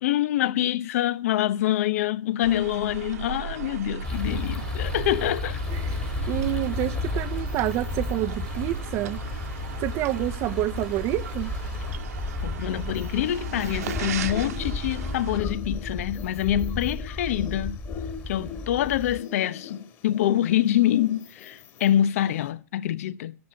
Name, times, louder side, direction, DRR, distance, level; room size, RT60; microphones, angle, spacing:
voice 1, 0.0-5.6 12.4-17.8 18.3-23.4, left 12 dB, 65° left, 0.9 m, -25 dB
sound 1, 2.4-15.4, right 8 dB, 80° right, 1.9 m, -36 dB
sound 2, 4.0-19.2, left 4 dB, 15° left, 1.8 m, -33 dB
sound 3, 5.7-22.5, left 6 dB, 35° left, 2.4 m, -45 dB
voice 2, 6.3-9.2 9.8-11.5, right 15 dB, 35° right, 0.8 m, -28 dB
14.0 x 11.0 x 6.9 m
hypercardioid pair, 145°, 8 cm